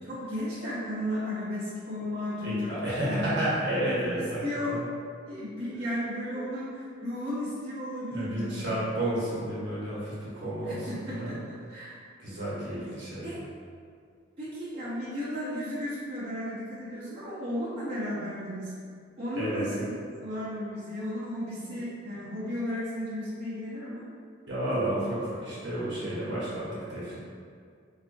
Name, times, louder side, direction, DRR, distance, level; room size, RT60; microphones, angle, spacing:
voice 1, 0.0-3.3 4.4-4.8 5.3-8.7 10.7-11.9 13.2-13.4 14.4-18.7 19.2-19.9 20.2-24.0, left 1 dB, 30° right, -13 dB, 0.7 m, -34 dB
voice 2, 2.4-4.8 8.1-11.3 12.2-13.3 19.3-19.9 21.6-21.8 24.5-27.2, right 1 dB, 60° right, -9 dB, 1.0 m, -31 dB
3.7 x 2.5 x 2.5 m, 2.2 s
head